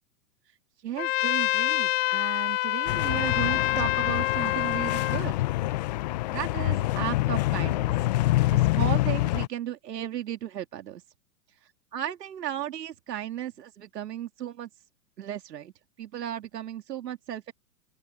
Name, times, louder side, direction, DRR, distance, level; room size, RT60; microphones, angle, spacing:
voice 1, 0.8-5.5 6.3-7.9 8.5-11.0 11.9-14.7 15.2-15.7 16.0-17.5, right 11 dB, 75° right, 2.6 m, -35 dB
Trumpet, 1.0-5.2, left 17 dB, 50° left, 1.3 m, -27 dB
sound 1, 2.9-9.5, left 17 dB, 30° left, 0.5 m, -26 dB
open air
hypercardioid pair, 135°, 49 cm